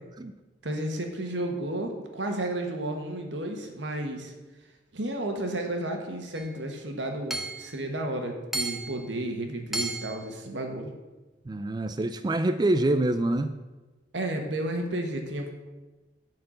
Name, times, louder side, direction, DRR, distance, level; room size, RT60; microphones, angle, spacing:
voice 1, 0.6-4.3 4.9-10.9 14.1-15.5, right 1 dB, 85° right, 4 dB, 1.5 m, -32 dB
Hammer / Chink clink, 6.4-6.5 7.3-7.7 8.5-9.0 9.7-10.2, right 2 dB, ahead, 0.8 m, -32 dB
voice 2, 11.5-13.5, right 1 dB, 25° right, 10 dB, 0.4 m, -25 dB
10.5 x 4.5 x 7.8 m, 1.2 s
head